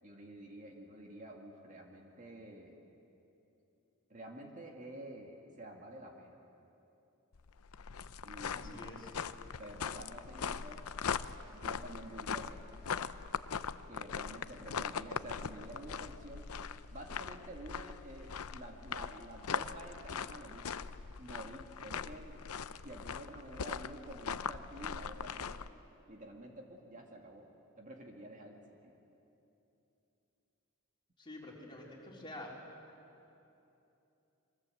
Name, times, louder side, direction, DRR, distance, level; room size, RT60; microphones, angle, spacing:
voice 1, 0.0-2.8 4.1-6.4 8.2-9.0 9.6-10.8 11.5-12.7 13.9-16.5 16.9-20.8 21.2-22.4 22.8-25.6 26.1-27.5 27.8-28.9, right 1 dB, 35° right, 1 dB, 2.1 m, -49 dB
sound 1, 7.3-25.7, left 6 dB, 85° left, 0.6 m, -41 dB
voice 2, 8.5-9.1 31.2-32.6, left 1 dB, 20° left, -3 dB, 3.9 m, -48 dB
26.5 x 23.5 x 7.8 m, 2.9 s
head